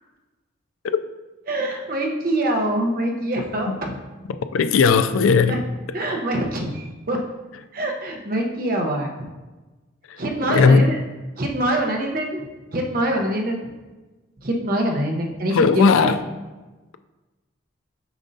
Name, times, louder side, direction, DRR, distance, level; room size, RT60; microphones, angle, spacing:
voice 1, 1.5-4.0 5.5-5.6 5.9-7.2 7.7-9.1 10.2-11.0 11.4-12.4 12.7-13.7 14.4-16.1, right 1 dB, 45° right, 1 dB, 0.8 m, -24 dB
voice 2, 4.5-5.6 10.5-10.9 15.5-16.2, left 5 dB, 90° left, 11 dB, 0.3 m, -16 dB
7.0 x 5.3 x 2.7 m, 1.2 s
head